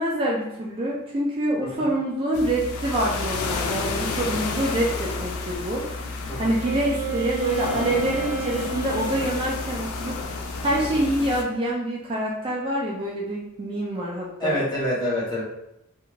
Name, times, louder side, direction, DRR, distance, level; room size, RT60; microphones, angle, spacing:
voice 1, 0.0-5.9 6.4-14.6, right 1 dB, 25° right, -4 dB, 0.4 m, -26 dB
sound 1, 2.3-11.4, left 3 dB, 75° left, 0.4 m, -31 dB
Wind instrument woodwind instrument, 6.6-9.5, right 3 dB, 80° right, 0.6 m, -31 dB
voice 2, 14.4-15.4, equal, 20° left, -6 dB, 0.8 m, -26 dB
2.5 x 2.3 x 2.9 m, 0.84 s
head